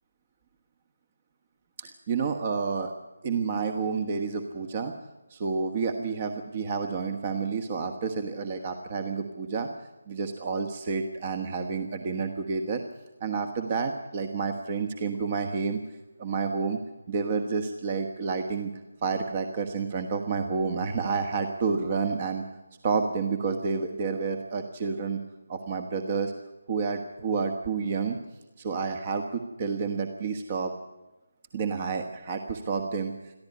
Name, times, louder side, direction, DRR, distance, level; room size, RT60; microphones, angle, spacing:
voice 1, 1.8-2.9 3.2-4.9 5.3-9.7 10.1-12.8 13.2-15.8 16.2-16.8 17.1-18.7 19.0-22.4 22.8-25.2 25.5-26.3 26.7-28.2 28.6-30.7 31.5-33.3, right 5 dB, 30° right, 7 dB, 1.4 m, -29 dB
23.0 x 14.5 x 9.5 m, 1.1 s
figure-of-eight pair, 155°, 0 cm